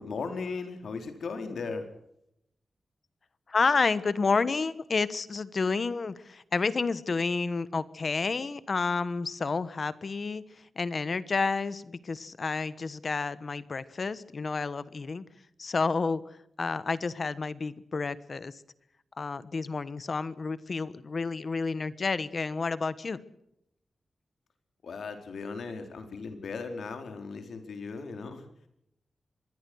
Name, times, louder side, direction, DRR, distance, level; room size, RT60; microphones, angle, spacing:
voice 1, 0.0-1.9 24.8-28.5, left 4 dB, 75° left, 6 dB, 4.4 m, -37 dB
voice 2, 3.5-15.2 15.6-16.2 16.6-18.6 19.2-23.2, left 4 dB, 40° left, 16 dB, 1.2 m, -30 dB
25.5 x 21.5 x 6.4 m, 0.78 s
wide cardioid pair, 165°, 0 cm